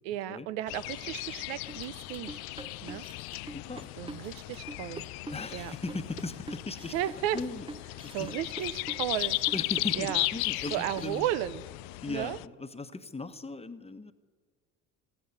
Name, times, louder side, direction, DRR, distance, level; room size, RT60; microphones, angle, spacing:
voice 1, 0.0-2.4 2.8-3.0 4.0-5.0 5.5-5.7 6.9-7.4 8.1-9.4 10.0-10.3 10.7-11.6 12.1-12.4, right 12 dB, 75° right, 16 dB, 0.8 m, -34 dB
sound 1, 0.7-12.5, left 21 dB, 70° left, 0.5 m, -36 dB
sound 2, 1.7-11.2, right 3 dB, 15° right, 0.7 m, -45 dB
voice 2, 3.5-3.9 5.3-6.9 7.3-7.7 8.0-8.3 9.5-11.3 12.0-14.1, left 3 dB, 15° left, 9 dB, 1.2 m, -38 dB
15.0 x 9.3 x 9.8 m, 1.5 s
hypercardioid pair, 65°, 39 cm